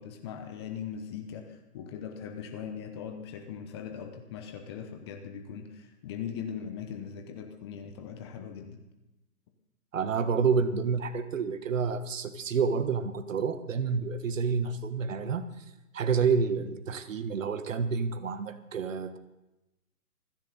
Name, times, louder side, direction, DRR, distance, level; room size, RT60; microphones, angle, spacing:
voice 1, 0.0-8.8, left 7 dB, 15° left, 5 dB, 0.8 m, -40 dB
voice 2, 9.9-15.5 15.9-19.2, right 5 dB, 55° right, 10 dB, 1.5 m, -29 dB
28.0 x 10.5 x 4.0 m, 0.97 s
hypercardioid pair, 145°, 46 cm